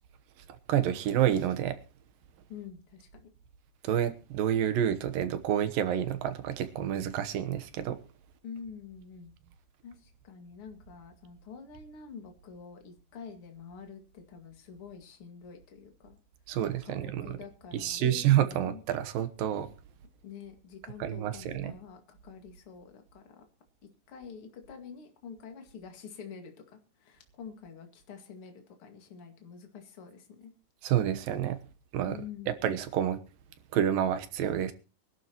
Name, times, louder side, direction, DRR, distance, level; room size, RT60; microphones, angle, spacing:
voice 1, 0.7-1.8 3.8-8.0 16.5-17.4 17.7-19.7 21.0-21.7 30.8-31.6 31.9-32.1 32.5-33.2 33.7-34.7, right 10 dB, 80° right, 10 dB, 2.9 m, -28 dB
voice 2, 2.5-3.3 8.4-9.3 9.8-16.2 16.8-18.8 20.2-23.4 24.1-26.5 27.0-30.5 32.1-32.5, left 6 dB, 45° left, 4 dB, 2.7 m, -47 dB
23.5 x 11.5 x 3.0 m, 0.32 s
omnidirectional pair, 4.0 m